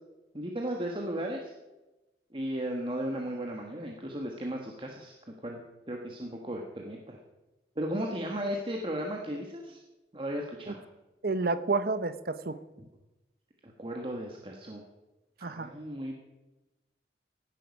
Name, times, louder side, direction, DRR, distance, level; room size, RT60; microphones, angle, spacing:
voice 1, 0.3-1.5 2.3-5.1 5.4-7.2 7.7-9.8 10.1-10.8 12.8-12.9 13.6-14.8 15.4-16.1, equal, 30° right, 1 dB, 1.5 m, -35 dB
voice 2, 11.2-12.6 15.4-15.7, right 3 dB, 55° right, 13 dB, 0.9 m, -30 dB
17.0 x 11.0 x 5.3 m, 1.0 s
head